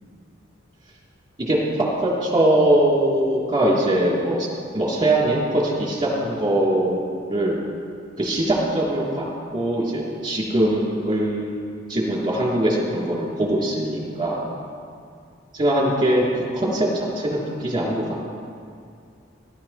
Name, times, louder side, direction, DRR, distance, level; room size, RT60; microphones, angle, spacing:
voice 1, 2.0-4.5 4.7-7.6 8.2-9.2 9.5-11.5 11.9-14.4 15.5-18.3, right 1 dB, 25° right, -5 dB, 3.2 m, -22 dB
19.5 x 11.5 x 3.2 m, 2.4 s
head